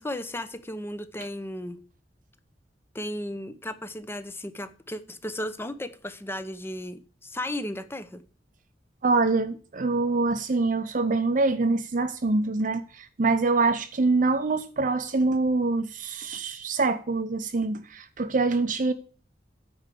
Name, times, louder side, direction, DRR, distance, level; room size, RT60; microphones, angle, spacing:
voice 1, 0.0-1.8 2.9-8.2, left 1 dB, 15° left, 0.7 m, -35 dB
voice 2, 9.0-18.9, right 3 dB, 50° right, 0.6 m, -25 dB
9.4 x 4.8 x 6.7 m
head